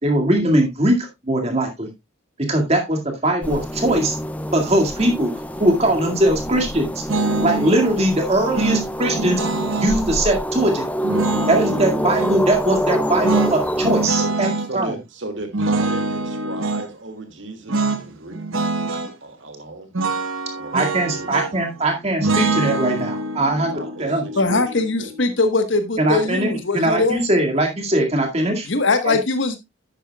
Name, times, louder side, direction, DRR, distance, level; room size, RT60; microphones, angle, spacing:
voice 1, 0.0-1.9 2.4-4.2 4.5-5.3 5.6-7.0 7.4-9.4 9.8-10.8 11.5-15.0 20.7-23.7 24.0-24.2 26.0-28.7 29.1-29.2, right 1 dB, 30° right, 2.1 m, -20 dB
sound 1, 3.4-14.1, equal, 10° left, 0.5 m, -26 dB
sound 2, 7.1-7.7 8.5-10.0 11.0-12.4 13.2-14.7 15.5-16.9 17.7-18.0 18.3-19.1 19.9-21.7 22.2-25.3, right 3 dB, 85° right, 1.1 m, -24 dB
voice 2, 14.2-18.4 19.2-19.9 20.6-20.8 21.1-21.3 23.7-25.1 26.1-26.5 27.0-27.1, right 2 dB, 70° right, 2.2 m, -35 dB
voice 3, 24.4-27.2 28.6-29.6, left 3 dB, 70° left, 1.2 m, -21 dB
11.0 x 8.9 x 2.3 m
head